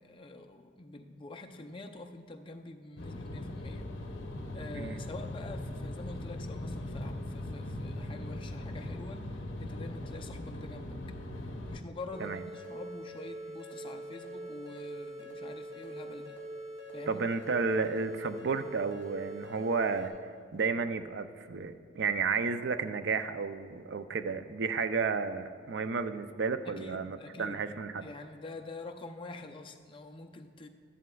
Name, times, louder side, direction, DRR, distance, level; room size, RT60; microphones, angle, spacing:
voice 1, 0.0-3.9 4.5-11.0 11.7-16.4 16.9-17.2 26.6-27.7 28.0-30.7, left 2 dB, 25° left, 4 dB, 0.5 m, -46 dB
sound 1, 3.0-11.8, left 1 dB, 65° left, 0.8 m, -40 dB
sound 2, 12.1-20.1, right 1 dB, 75° right, 2.0 m, -43 dB
voice 2, 17.1-20.2 20.5-28.1, right 5 dB, 55° right, 10 dB, 0.4 m, -32 dB
13.5 x 11.0 x 2.3 m, 2.2 s
head